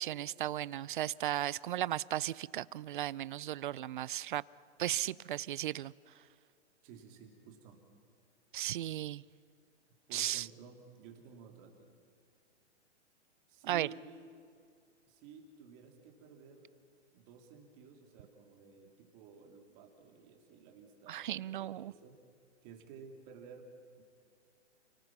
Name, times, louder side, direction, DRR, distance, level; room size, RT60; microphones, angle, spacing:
voice 1, 0.0-4.4 4.8-5.9 8.5-9.2 10.1-10.5 13.7-13.9 21.1-21.9, right 12 dB, 45° right, 22 dB, 0.4 m, -35 dB
voice 2, 6.8-7.8 10.1-12.0 13.5-14.3 15.1-16.7 17.1-22.2 22.6-23.7 24.0-24.1, right 6 dB, 30° right, 2 dB, 3.0 m, -54 dB
30.0 x 19.0 x 6.0 m, 2.3 s
hypercardioid pair, 155°, 35 cm